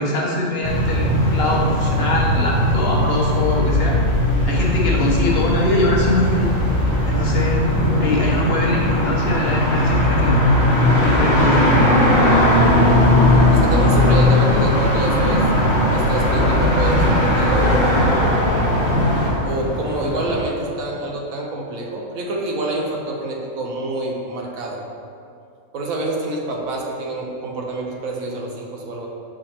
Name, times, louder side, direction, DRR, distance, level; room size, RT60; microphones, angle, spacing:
voice 1, 0.0-4.0 4.4-6.5 7.0-7.6 8.0-10.4 11.0-11.7, left 1 dB, 55° left, -2 dB, 0.9 m, -22 dB
sound 1, 0.6-19.3, left 1 dB, 25° right, 1.5 m, -18 dB
sound 2, 5.2-20.4, equal, 15° left, 0.7 m, -27 dB
voice 2, 13.5-15.5 15.9-18.0 19.4-24.8 25.7-29.1, right 2 dB, 80° right, -1 dB, 1.2 m, -27 dB
6.6 x 5.0 x 2.9 m, 2.4 s
omnidirectional pair, 1.4 m